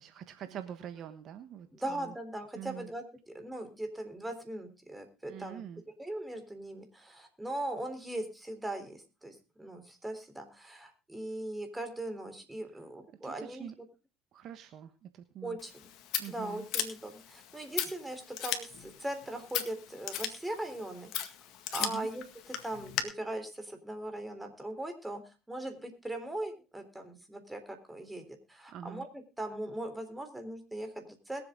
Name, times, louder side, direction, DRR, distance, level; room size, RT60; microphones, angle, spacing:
voice 1, 0.0-2.1 2.5-2.9 5.3-5.8 13.1-13.7 14.3-15.6 16.2-16.6 21.8-22.1 28.7-29.1, right 10 dB, 55° right, 9 dB, 1.2 m, -45 dB
voice 2, 1.8-5.6 6.0-13.7 15.4-15.9 16.3-21.1 21.7-22.2 22.6-25.2 25.5-29.1 29.4-31.4, right 1 dB, 10° right, 6 dB, 3.7 m, -39 dB
Scissors, 15.6-23.0, left 11 dB, 65° left, 1.9 m, -38 dB
21.5 x 7.8 x 3.7 m, 0.32 s
hypercardioid pair, 75°, 0 cm